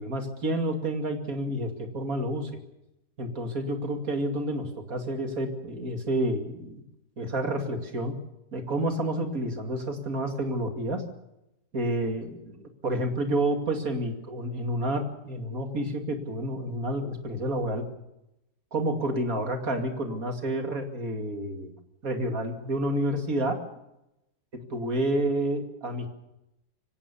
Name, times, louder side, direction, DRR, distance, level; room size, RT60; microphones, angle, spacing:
voice 1, 0.0-2.5 3.2-6.8 7.2-8.1 8.5-11.0 11.7-17.8 18.7-21.7 22.0-23.6 24.7-26.1, right 1 dB, 55° right, 4 dB, 3.0 m, -29 dB
25.0 x 16.5 x 7.1 m, 0.88 s
omnidirectional pair, 1.8 m